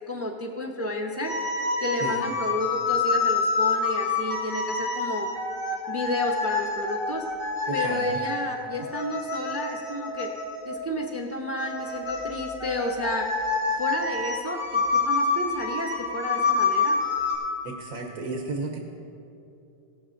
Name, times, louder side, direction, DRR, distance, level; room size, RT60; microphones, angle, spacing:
voice 1, 0.1-1.3 1.8-5.3 5.9-7.2 7.7-10.3 10.7-13.3 13.8-17.0, left 1 dB, 20° right, 2 dB, 0.4 m, -31 dB
sound 1, 1.2-10.8 11.6-17.4, left 4 dB, 80° left, 3.0 m, -27 dB
voice 2, 7.7-8.2 17.6-18.8, right 3 dB, 90° right, 2 dB, 1.4 m, -33 dB
16.5 x 13.0 x 2.6 m, 2.8 s
omnidirectional pair, 1.4 m